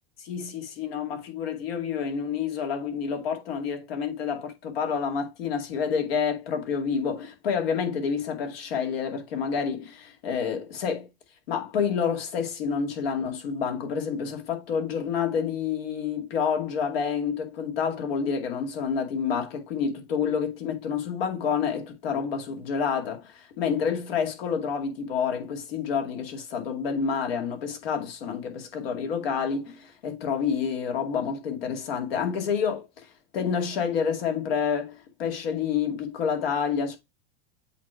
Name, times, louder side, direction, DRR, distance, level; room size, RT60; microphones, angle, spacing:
voice 1, 0.2-11.1 11.5-33.1 33.3-37.0, left 6 dB, 80° left, 2.3 m, -28 dB
8.2 x 3.1 x 4.4 m
supercardioid pair, 125°, 29 cm